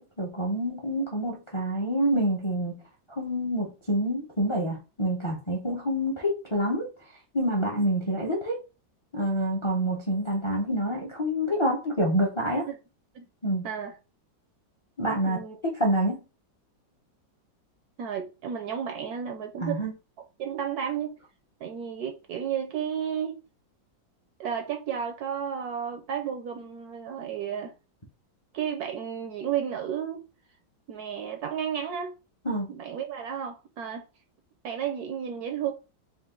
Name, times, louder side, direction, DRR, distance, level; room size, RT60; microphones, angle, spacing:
voice 1, 0.0-2.8 3.1-6.9 7.3-8.6 9.1-12.7 13.4-13.6 15.0-16.2 19.6-19.9 32.4-32.7, right 1 dB, 40° left, 0.4 m, -27 dB
voice 2, 13.6-13.9 15.3-15.6 18.0-19.8 20.4-21.2 21.6-23.4 24.4-27.7 28.5-30.2 30.9-32.1 32.7-34.1 34.6-35.7, right 8 dB, 70° right, 0.9 m, -32 dB
4.2 x 2.5 x 3.7 m
omnidirectional pair, 2.0 m